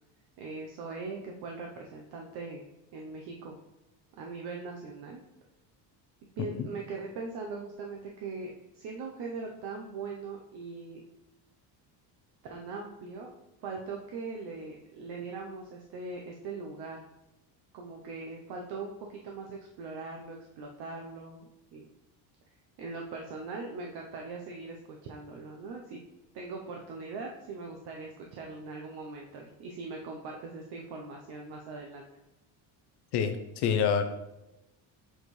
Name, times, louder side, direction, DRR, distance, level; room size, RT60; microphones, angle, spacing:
voice 1, 0.4-2.6 2.9-3.6 4.1-5.2 6.4-11.0 12.5-17.0 17.7-21.9 22.8-26.0 26.3-32.1, right 4 dB, 55° right, 1 dB, 0.8 m, -41 dB
voice 2, 33.1-34.0, left 7 dB, 55° left, 8 dB, 0.7 m, -27 dB
7.8 x 4.5 x 3.2 m, 0.96 s
cardioid pair, 165°, 48 cm